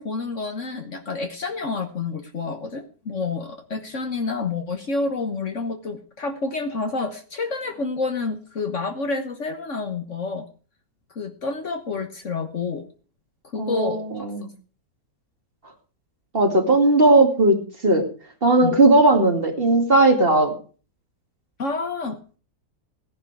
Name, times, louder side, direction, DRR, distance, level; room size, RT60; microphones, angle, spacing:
voice 1, 0.0-10.5 11.1-12.8 13.5-14.3 18.6-18.8 21.6-22.2, left 4 dB, 50° left, 7 dB, 1.5 m, -29 dB
voice 2, 13.6-14.5 16.3-18.1 18.4-20.5, right 2 dB, 35° right, 4 dB, 2.4 m, -17 dB
17.0 x 10.5 x 4.7 m, 0.39 s
omnidirectional pair, 1.8 m